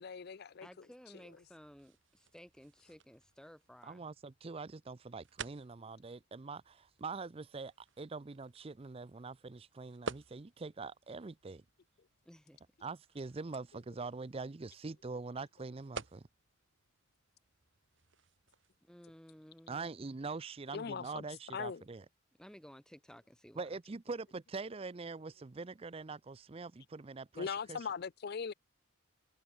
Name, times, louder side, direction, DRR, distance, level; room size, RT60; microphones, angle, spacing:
voice 1, 0.0-0.7 20.7-21.2 21.5-21.8 27.4-28.5, left 6 dB, 50° left, 0.4 m, -40 dB
voice 2, 0.6-4.1 12.2-12.6 18.8-19.9 22.4-23.8, equal, 5° left, 1.1 m, -56 dB
sound 1, 1.1-18.8, right 4 dB, 60° right, 1.9 m, -53 dB
voice 3, 3.8-11.6 12.8-16.2 19.7-22.0 23.6-27.9, right 4 dB, 25° right, 0.4 m, -44 dB
head